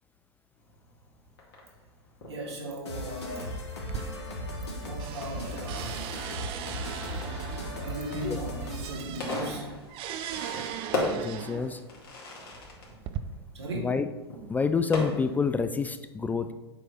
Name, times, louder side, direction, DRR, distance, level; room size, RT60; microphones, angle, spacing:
Fireworks, 0.6-15.6, left 2 dB, 60° left, 2.4 m, -39 dB
voice 1, 2.3-3.7 4.6-6.2 7.8-9.8 13.5-13.9 16.3-16.4, right 1 dB, 80° right, -1 dB, 2.0 m, -37 dB
sound 1, 2.9-9.1, equal, 80° left, 1.5 m, -37 dB
sound 2, 3.8-4.7 5.0-11.8 12.6-13.2, right 10 dB, 40° right, 0.6 m, -39 dB
voice 2, 11.1-11.8 13.7-14.1 14.5-16.5, left 5 dB, 10° left, 10 dB, 0.3 m, -28 dB
8.2 x 3.3 x 5.8 m, 1.1 s
hypercardioid pair, 100°, 14 cm